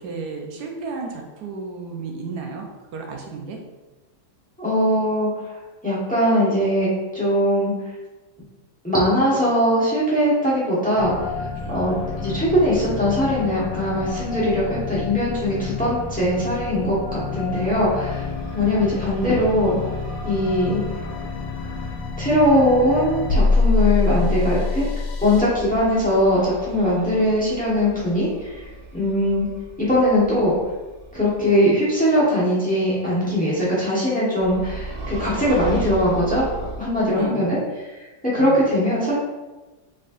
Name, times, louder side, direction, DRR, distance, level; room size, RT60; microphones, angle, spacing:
voice 1, 0.0-2.7 2.9-3.6 11.5-11.7 17.1-17.4 37.0-37.4 38.4-38.6, right 4 dB, 75° right, 1 dB, 1.2 m, -33 dB
voice 2, 4.6-5.3 5.8-7.7 8.8-11.3 11.7-18.3 18.5-19.8 20.2-20.8 22.2-24.9 25.2-28.6 28.9-29.4 29.8-30.5 31.1-36.5 36.8-37.6 38.3-39.1, equal, 5° left, -8 dB, 1.0 m, -20 dB
sound 1, 11.0-25.4, left 3 dB, 85° left, 1.3 m, -27 dB
sound 2, 18.1-22.1 25.2-31.6 34.4-37.2, right 1 dB, 60° right, 1.4 m, -36 dB
4.2 x 3.7 x 2.5 m, 1.1 s
omnidirectional pair, 1.8 m